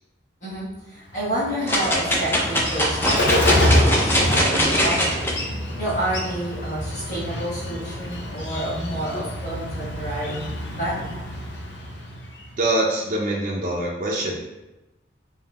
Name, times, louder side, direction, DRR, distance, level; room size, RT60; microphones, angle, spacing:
voice 1, 0.4-5.3 5.8-11.2, right 1 dB, 40° left, -8 dB, 1.2 m, -29 dB
Bird, 1.1-12.6, left 1 dB, 80° left, 0.6 m, -27 dB
sound 1, 1.7-5.3 5.9-6.0, equal, 15° left, 0.5 m, -22 dB
voice 2, 12.6-14.4, right 1 dB, 45° right, -3 dB, 0.5 m, -24 dB
5.1 x 2.6 x 2.3 m, 1.0 s
head